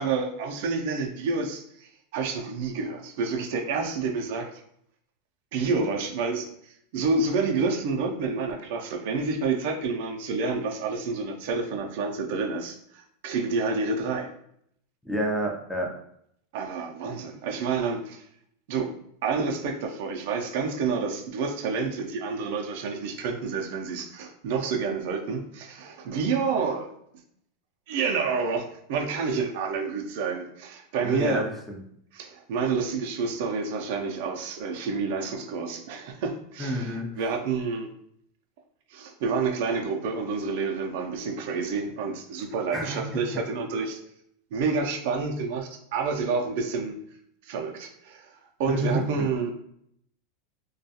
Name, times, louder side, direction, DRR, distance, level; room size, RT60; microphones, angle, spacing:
voice 1, 0.0-4.5 5.5-14.3 16.5-18.2 18.7-18.9 19.2-26.9 27.9-31.5 32.1-37.9 38.9-44.0 44.5-47.0 47.4-48.3 48.6-49.5, right 4 dB, 65° right, 3 dB, 0.4 m, -29 dB
voice 2, 15.0-15.9 31.0-31.8 36.6-37.2 42.7-43.2 48.7-49.1, equal, ahead, 0 dB, 0.4 m, -29 dB
2.3 x 2.2 x 2.7 m, 0.70 s
supercardioid pair, 145°, 0 cm